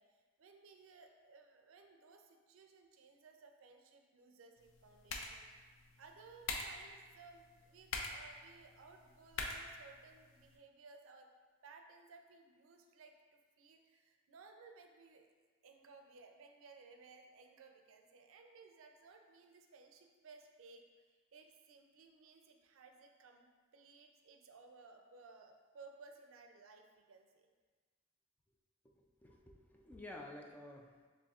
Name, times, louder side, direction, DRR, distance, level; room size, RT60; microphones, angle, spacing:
voice 1, 0.0-5.5 6.0-11.3 11.6-15.3 15.6-27.5, right 4 dB, 80° right, 4 dB, 0.4 m, -60 dB
sound 1, 4.6-10.6, left 3 dB, 70° left, 0.5 m, -46 dB
voice 2, 28.9-31.1, left 1 dB, 10° left, 0 dB, 0.3 m, -52 dB
6.9 x 2.6 x 2.4 m, 1.4 s
head